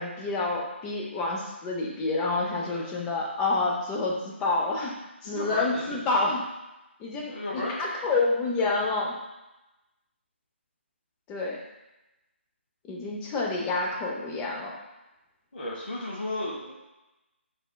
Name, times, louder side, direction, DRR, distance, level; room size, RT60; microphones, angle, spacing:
voice 1, 0.0-4.9 5.2-6.5 7.0-9.1 11.3-11.6 12.9-14.8, left 3 dB, 15° left, -2 dB, 0.4 m, -28 dB
voice 2, 2.6-3.0 5.2-6.0 7.3-7.8 15.5-16.7, left 1 dB, 60° left, -6 dB, 0.9 m, -34 dB
4.2 x 3.3 x 2.2 m, 0.99 s
figure-of-eight pair, 155°, 7 cm